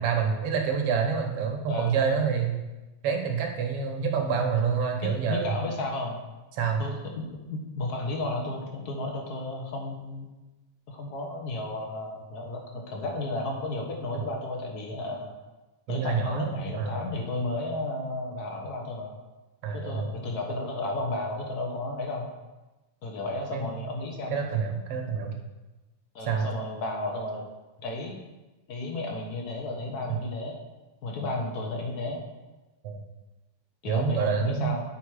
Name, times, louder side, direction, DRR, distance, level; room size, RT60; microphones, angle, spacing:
voice 1, 0.0-2.6 3.0-5.5 6.5-6.8 15.9-17.1 19.6-20.1 23.5-23.7 24.3-25.3 26.3-26.5 32.8-33.0 33.9-34.7, right 6 dB, 65° right, 3 dB, 1.7 m, -27 dB
voice 2, 1.7-2.0 5.0-6.2 6.8-10.3 10.9-15.3 15.9-19.1 19.7-22.3 23.0-24.3 26.1-27.4 27.8-28.2 28.7-30.6 31.0-32.2 33.8-34.8, left 2 dB, 75° left, 1 dB, 0.9 m, -33 dB
11.0 x 4.4 x 4.8 m, 1.1 s
omnidirectional pair, 3.4 m